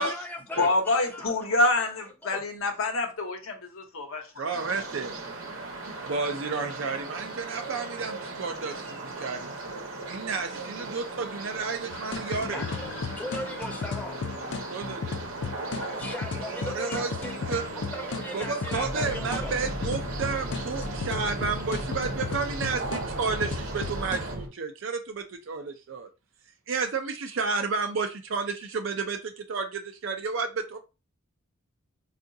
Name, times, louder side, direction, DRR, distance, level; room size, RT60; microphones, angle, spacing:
voice 1, 0.0-0.7 0.9-1.3 2.2-2.4 12.5-14.2 15.5-17.4 17.7-19.6, left 1 dB, 10° left, 0.6 m, -38 dB
voice 2, 0.6-4.4, left 2 dB, 75° left, 0.9 m, -27 dB
voice 3, 4.4-5.1 6.0-12.6 14.7-15.2 16.4-17.1 17.5-17.6 18.3-26.1 26.7-30.8, right 4 dB, 60° right, 0.5 m, -32 dB
sound 1, 4.5-24.4, right 3 dB, 80° right, 0.9 m, -38 dB
sound 2, 11.9-24.2, left 5 dB, 55° left, 0.3 m, -35 dB
sound 3, 18.7-24.5, equal, 40° right, 0.9 m, -36 dB
4.6 x 2.4 x 2.7 m
head